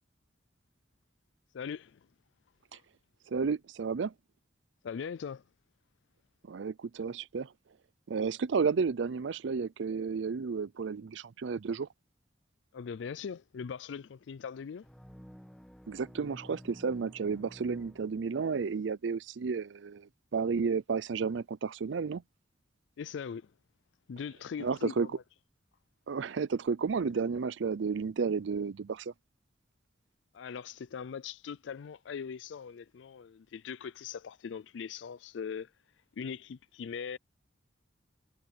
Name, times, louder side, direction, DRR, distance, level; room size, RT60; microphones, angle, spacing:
voice 1, 1.5-2.0 2.7-2.8 4.8-5.4 12.7-14.8 23.0-23.5 24.1-25.2 30.3-35.7 36.2-37.2, left 6 dB, 80° left, 0.4 m, -40 dB
voice 2, 3.3-4.1 6.5-7.5 8.1-11.9 15.9-22.2 24.6-25.1 26.1-29.1, right 5 dB, 75° right, 0.5 m, -32 dB
sound 1, 14.8-18.7, equal, 5° left, 1.6 m, -52 dB
head